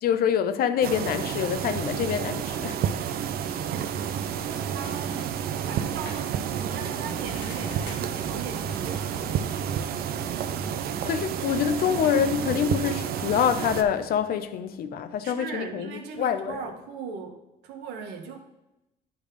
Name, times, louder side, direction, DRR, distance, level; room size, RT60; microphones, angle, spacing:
voice 1, 0.0-2.8 11.0-16.6, left 8 dB, 65° left, 0.6 m, -26 dB
sound 1, 0.8-13.8, right 9 dB, 65° right, 0.6 m, -30 dB
sound 2, 3.0-14.2, left 3 dB, 85° left, 1.5 m, -48 dB
voice 2, 4.7-9.6 15.2-18.4, right 5 dB, 85° right, 1.0 m, -39 dB
sound 3, 7.1-14.5, left 1 dB, 40° left, 0.9 m, -46 dB
10.5 x 3.5 x 5.0 m
cardioid pair, 110°, 17 cm